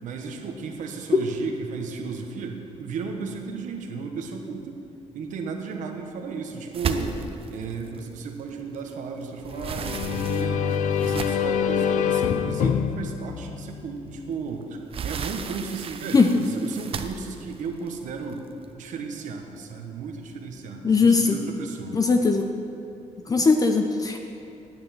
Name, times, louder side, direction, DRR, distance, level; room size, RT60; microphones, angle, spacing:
voice 1, 0.0-4.9 5.1-7.2 7.5-10.7 11.0-16.2 16.5-18.5 18.7-22.0, right 5 dB, 85° right, 3 dB, 1.3 m, -34 dB
sound 1, 6.7-8.9 9.2-11.6 12.3-12.4 12.8-13.0 14.3-18.6, right 6 dB, 45° right, 0.7 m, -35 dB
sound 2, 9.5-14.3, left 7 dB, 75° left, 0.6 m, -26 dB
voice 2, 20.8-21.3 21.9-22.5 23.3-24.2, left 4 dB, 30° left, 5 dB, 0.7 m, -19 dB
10.5 x 9.2 x 7.6 m, 2.7 s
cardioid pair, 140°, 13 cm